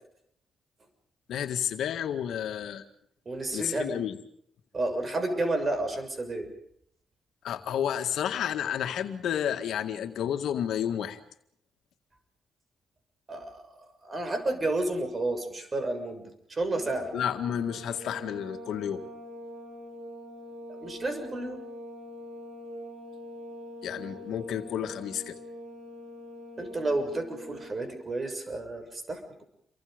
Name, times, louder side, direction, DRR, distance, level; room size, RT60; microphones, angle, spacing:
voice 1, 1.3-2.8 3.5-4.2 7.4-11.2 17.1-19.0 23.8-25.4, left 9 dB, 80° left, 7 dB, 1.9 m, -31 dB
voice 2, 3.2-4.0 4.7-6.5 13.3-13.6 14.0-17.1 20.8-21.6 26.6-29.4, right 2 dB, 35° right, 7 dB, 6.6 m, -31 dB
sound 1, 16.7-27.8, equal, 70° right, 7.2 m, -44 dB
29.0 x 24.0 x 5.2 m, 0.70 s
cardioid pair, 75°, 0 cm